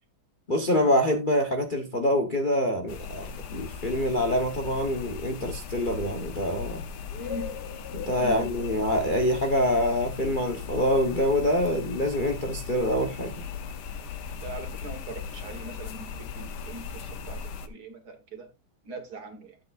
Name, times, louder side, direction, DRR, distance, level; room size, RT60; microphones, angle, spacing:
voice 1, 0.5-6.8 7.9-13.3, left 1 dB, 30° left, 1.0 m, -25 dB
sound 1, 2.9-17.7, left 6 dB, 60° left, 1.4 m, -38 dB
voice 2, 7.2-7.5 8.1-8.4 14.4-18.5 18.8-19.6, right 2 dB, 55° right, 2.0 m, -41 dB
12.0 x 8.0 x 2.5 m
omnidirectional pair, 2.2 m